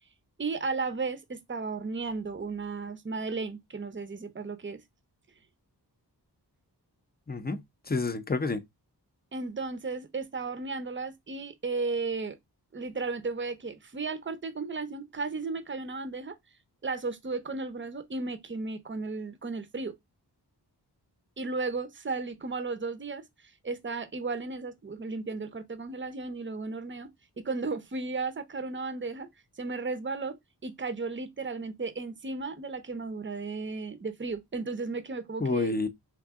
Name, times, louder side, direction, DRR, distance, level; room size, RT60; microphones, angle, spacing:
voice 1, 0.4-4.8 9.3-12.4 12.7-16.3 16.8-19.9 21.4-27.1 27.4-29.3 29.6-30.3 30.6-35.7, right 3 dB, 30° right, 0.7 m, -34 dB
voice 2, 7.3-8.6 35.4-35.9, left 3 dB, 25° left, 0.6 m, -29 dB
3.6 x 2.7 x 3.5 m
wide cardioid pair, 55°, 42 cm